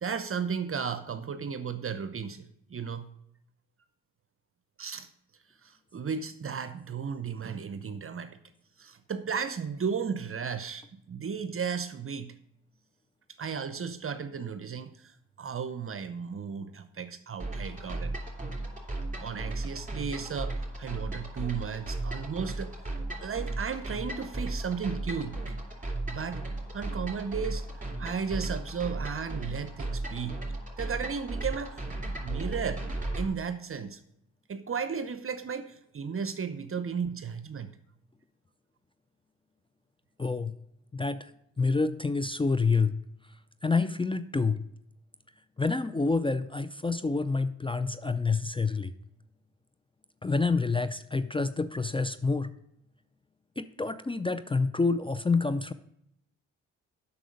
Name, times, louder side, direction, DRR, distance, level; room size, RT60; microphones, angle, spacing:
voice 1, 0.0-3.1 4.8-5.1 5.6-8.4 8.8-12.4 13.4-18.2 19.2-22.8 23.2-25.4 26.1-26.4 26.7-27.7 28.0-30.4 30.8-32.9 33.2-34.0 34.5-37.8, right 6 dB, 40° right, 11 dB, 0.7 m, -34 dB
sound 1, 17.4-33.3, right 2 dB, 25° right, 3.0 m, -35 dB
voice 2, 40.2-40.6 40.9-41.3 41.6-42.9 43.6-44.6 45.6-48.9 50.2-52.5 53.6-55.7, left 4 dB, 15° left, 12 dB, 0.5 m, -28 dB
7.5 x 6.0 x 6.4 m, 0.75 s
supercardioid pair, 45°, 34 cm